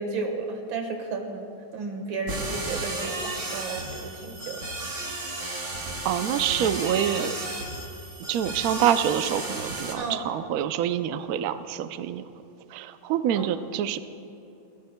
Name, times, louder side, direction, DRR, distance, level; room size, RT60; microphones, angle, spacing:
voice 1, 0.0-1.5 1.7-4.6 10.0-10.2 13.3-13.5, right 3 dB, 65° right, 4 dB, 2.2 m, -33 dB
sound 1, 2.3-9.9, right 2 dB, 45° right, 2.2 m, -33 dB
voice 2, 6.0-7.3 8.3-12.3 12.7-14.0, right 9 dB, 85° right, 10 dB, 0.8 m, -26 dB
27.0 x 15.0 x 2.2 m, 2.9 s
omnidirectional pair, 2.3 m